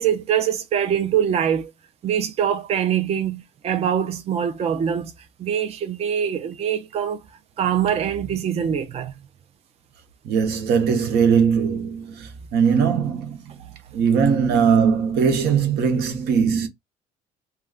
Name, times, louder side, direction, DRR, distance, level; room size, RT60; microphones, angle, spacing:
voice 1, 0.0-1.7 2.0-5.1 5.4-7.2 7.6-9.1, right 8 dB, 35° right, 0.5 m, -23 dB
voice 2, 10.2-13.6 13.9-16.7, right 6 dB, 80° right, 0.8 m, -20 dB
2.3 x 2.2 x 3.5 m
cardioid pair, 110°, 17 cm